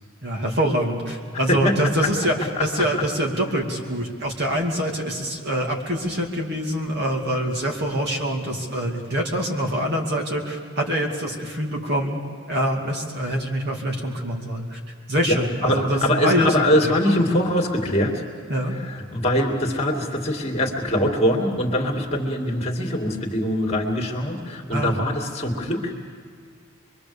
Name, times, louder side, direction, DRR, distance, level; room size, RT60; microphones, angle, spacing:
voice 1, 0.2-12.2 12.5-14.8 15.1-16.5 16.8-16.9 18.5-18.8 24.7-25.1, equal, 50° right, 0 dB, 2.5 m, -25 dB
voice 2, 1.5-2.1 2.6-2.7 2.9-3.0 13.3-13.4 15.3-18.2 18.7-25.9, left 1 dB, 30° left, 0 dB, 2.4 m, -23 dB
26.5 x 22.5 x 7.0 m, 2.1 s
head